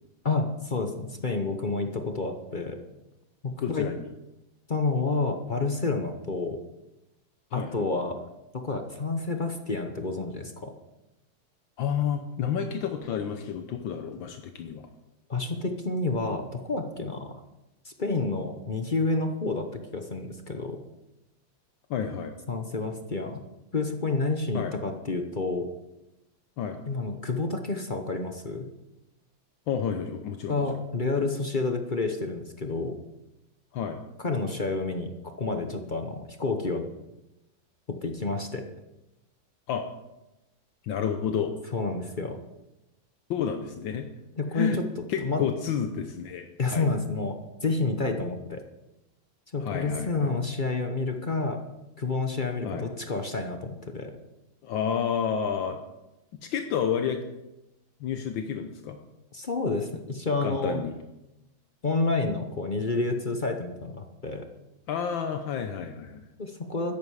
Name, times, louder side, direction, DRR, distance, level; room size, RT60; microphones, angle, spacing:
voice 1, 0.2-2.8 3.4-3.9 4.7-6.6 7.5-8.2 8.6-10.7 15.3-17.4 17.8-19.6 19.9-20.8 22.5-23.4 23.7-25.7 26.9-28.7 30.5-33.0 34.2-36.8 37.9-38.6 41.7-42.4 44.4-44.8 45.2-45.4 46.6-48.6 49.5-51.6 52.0-54.1 59.3-60.8 61.8-64.5 66.4-67.0, left 3 dB, 40° left, 5 dB, 0.7 m, -29 dB
voice 2, 3.6-4.1 7.5-7.9 11.8-14.8 21.9-22.3 24.5-24.7 26.6-26.8 29.7-30.6 33.7-34.0 39.7-39.8 40.8-41.5 43.3-44.1 44.5-44.8 45.1-46.9 49.6-50.3 52.6-52.9 54.6-55.8 56.4-57.2 58.0-59.0 60.4-60.9 64.9-66.2, left 7 dB, 75° left, 6 dB, 1.6 m, -30 dB
13.0 x 11.0 x 4.8 m, 0.96 s
omnidirectional pair, 2.2 m